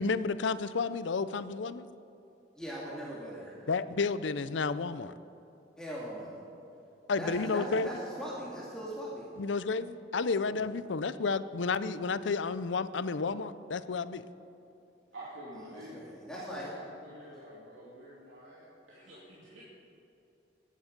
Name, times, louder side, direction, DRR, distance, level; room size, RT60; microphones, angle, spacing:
voice 1, 0.0-1.9 3.7-5.1 7.1-7.9 9.4-14.3, left 4 dB, 80° left, 15 dB, 0.6 m, -31 dB
voice 2, 2.6-3.6 5.8-6.4 7.2-9.3 10.4-10.6 15.7-16.7, equal, 5° left, -6 dB, 2.3 m, -40 dB
voice 3, 15.1-19.6, right 1 dB, 90° right, -7 dB, 2.8 m, -48 dB
22.5 x 9.8 x 5.3 m, 2.8 s
head